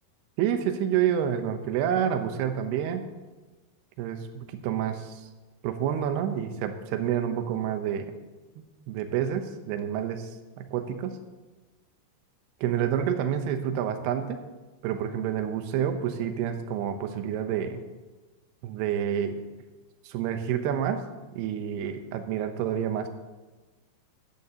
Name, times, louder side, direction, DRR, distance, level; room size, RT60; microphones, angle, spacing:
voice 1, 0.4-3.0 4.0-5.2 5.6-8.1 8.9-10.3 10.6-11.2 12.6-14.5 14.8-17.8 18.6-19.4 20.1-21.1 21.4-23.1, right 9 dB, 80° right, 7 dB, 2.8 m, -28 dB
17.5 x 13.5 x 2.9 m, 1.2 s
omnidirectional pair, 4.9 m